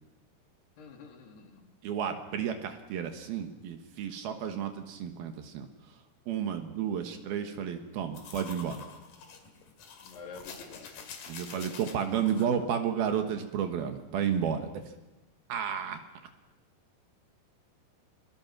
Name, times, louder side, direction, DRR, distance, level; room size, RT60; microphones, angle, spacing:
voice 1, 0.8-1.7 10.0-11.0, left 5 dB, 75° left, 3 dB, 4.5 m, -48 dB
voice 2, 1.8-5.7 6.3-8.9 11.3-14.8 15.5-16.0, right 8 dB, 70° right, 6 dB, 3.1 m, -32 dB
sound 1, 8.1-12.5, left 6 dB, 60° left, 3.6 m, -47 dB
29.5 x 22.5 x 6.1 m, 1.1 s
omnidirectional pair, 4.8 m